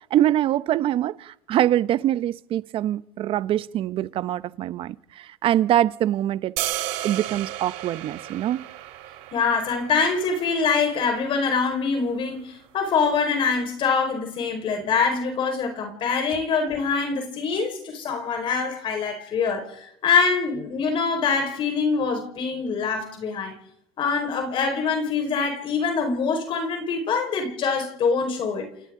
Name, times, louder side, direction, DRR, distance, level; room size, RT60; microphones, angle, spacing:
voice 1, 0.1-6.5 7.0-8.6, right 12 dB, 50° right, 0.8 m, -24 dB
sound 1, 6.6-12.7, right 14 dB, 70° right, 2.4 m, -35 dB
voice 2, 9.3-23.5 24.0-28.7, left 5 dB, 50° left, 5.0 m, -24 dB
28.5 x 28.5 x 3.8 m
supercardioid pair, 90°, 11 cm